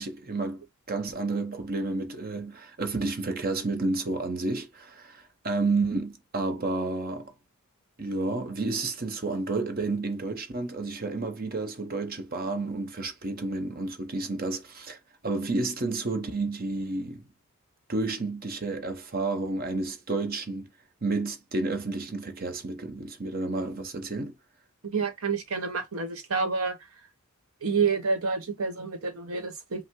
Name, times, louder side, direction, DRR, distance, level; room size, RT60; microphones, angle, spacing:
voice 1, 0.0-7.3 8.0-17.3 17.9-20.7 21.0-24.3, right 3 dB, 40° right, 0.8 m, -31 dB
voice 2, 24.8-26.8 27.6-29.9, right 5 dB, 75° right, 1.0 m, -28 dB
5.5 x 2.1 x 3.7 m
head